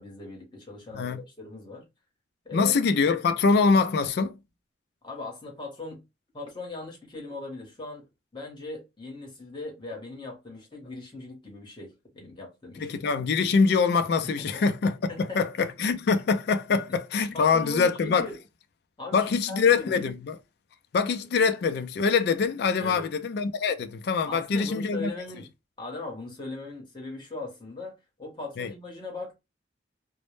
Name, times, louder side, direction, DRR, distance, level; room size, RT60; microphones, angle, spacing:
voice 1, 0.0-1.9 2.4-2.8 5.0-6.0 6.3-8.1 8.3-12.9 14.2-14.5 15.1-15.7 16.7-16.8 17.3-18.4 19.0-20.0 22.8-23.1 24.3-25.5 25.8-29.3, left 2 dB, 25° left, 0.9 m, -39 dB
voice 2, 2.5-4.4 12.8-18.3 19.1-20.4 20.9-25.1 28.6-28.7, left 5 dB, 60° left, 0.3 m, -24 dB
2.0 x 2.0 x 3.0 m
head